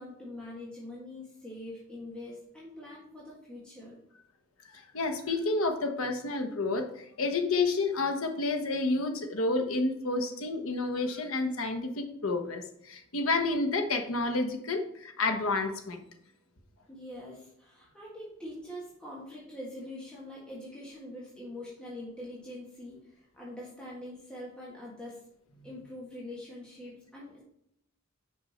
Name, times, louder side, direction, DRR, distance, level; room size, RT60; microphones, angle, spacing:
voice 1, 0.0-4.0 16.9-25.2 25.6-27.4, left 1 dB, 5° left, -6 dB, 1.6 m, -44 dB
voice 2, 4.7-16.0, left 3 dB, 85° left, 5 dB, 1.1 m, -30 dB
6.1 x 5.3 x 4.3 m, 0.75 s
head